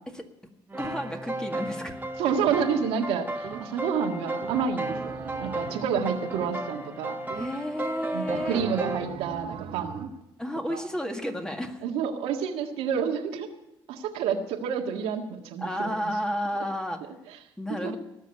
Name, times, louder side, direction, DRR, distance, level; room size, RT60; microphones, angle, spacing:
sound 1, 0.7-9.1, right 1 dB, 20° right, 1.7 m, -34 dB
voice 1, 0.8-1.9 7.3-8.6 10.4-11.8 15.6-17.0 17.6-18.0, equal, 5° left, 4 dB, 1.9 m, -31 dB
voice 2, 2.2-7.2 8.1-10.1 10.7-10.9 11.8-13.5 13.9-15.9 17.0-17.4 17.7-18.0, right 7 dB, 90° right, 3 dB, 1.8 m, -29 dB
sound 2, 2.5-3.0 3.4-4.0 4.4-6.9 7.3-7.8 8.3-10.2, right 9 dB, 70° right, 1.2 m, -40 dB
18.0 x 6.5 x 9.9 m, 0.91 s
cardioid pair, 95°, 10 cm